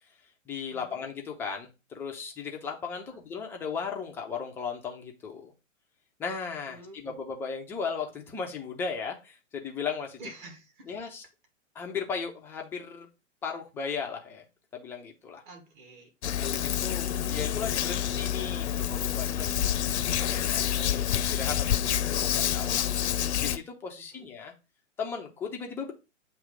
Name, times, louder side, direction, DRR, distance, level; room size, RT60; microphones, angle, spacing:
voice 1, 0.5-5.5 6.2-10.2 10.9-11.2 11.7-13.1 13.4-14.4 14.7-15.4 16.2-22.9 23.4-24.5 25.0-25.9, left 6 dB, 5° left, 2 dB, 0.4 m, -36 dB
voice 2, 6.7-7.2 10.2-11.0 15.5-16.1 16.6-16.8 24.0-24.3, right 2 dB, 40° right, 5 dB, 2.1 m, -49 dB
Hands, 16.2-23.6, left 10 dB, 60° left, 0.6 m, -28 dB
7.6 x 3.0 x 4.9 m, 0.28 s
figure-of-eight pair, 115°, 39 cm